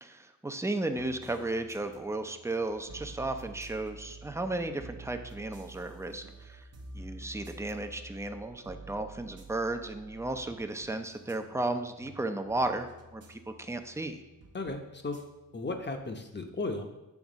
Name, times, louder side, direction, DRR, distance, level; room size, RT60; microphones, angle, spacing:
voice 1, 0.0-6.6 6.9-14.2, right 2 dB, 10° right, 6 dB, 0.5 m, -34 dB
sound 1, 1.0-16.2, right 2 dB, 45° right, 0.8 m, -50 dB
voice 2, 14.5-15.2 15.5-16.9, left 3 dB, 30° left, 5 dB, 0.9 m, -35 dB
7.2 x 3.5 x 5.1 m, 1.0 s
cardioid pair, 65°, 35 cm